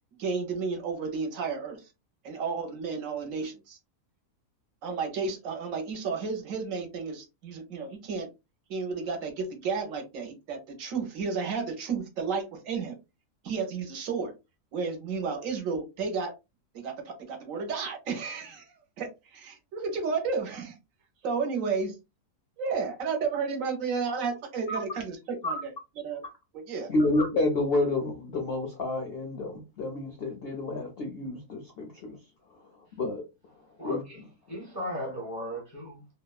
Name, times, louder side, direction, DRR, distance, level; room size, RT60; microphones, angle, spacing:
voice 1, 0.2-1.9 2.2-3.8 4.8-8.3 8.7-13.0 13.4-14.3 14.7-16.3 16.7-20.8 21.2-22.0 22.6-25.2 25.4-25.7 26.0-26.2 26.5-26.9, right 5 dB, 65° right, 1.0 m, -32 dB
voice 2, 26.9-32.2 32.5-32.7 32.9-33.3 33.8-34.0, left 2 dB, 65° left, 0.6 m, -29 dB
voice 3, 33.8-36.1, equal, 20° left, 0.5 m, -37 dB
2.8 x 2.1 x 2.2 m
omnidirectional pair, 1.6 m